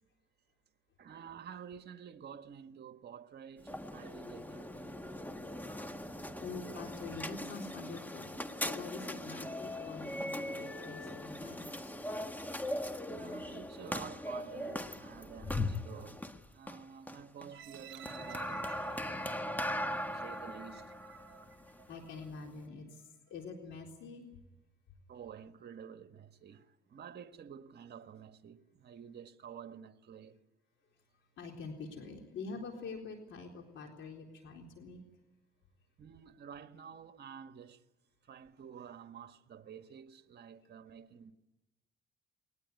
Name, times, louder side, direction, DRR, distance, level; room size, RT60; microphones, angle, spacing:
voice 1, 1.0-4.9 13.1-21.0 25.1-30.4 36.0-37.8 38.2-41.3, right 8 dB, 55° right, 1.7 m, -50 dB
sound 1, 3.6-22.7, left 1 dB, 10° left, 1.6 m, -40 dB
voice 2, 6.4-11.8 21.9-24.2 31.4-35.0, left 4 dB, 75° left, 4.0 m, -46 dB
sound 2, 17.5-22.5 23.0-23.1, right 10 dB, 85° right, 0.9 m, -54 dB
21.5 x 19.0 x 9.6 m
cardioid pair, 90°, 20 cm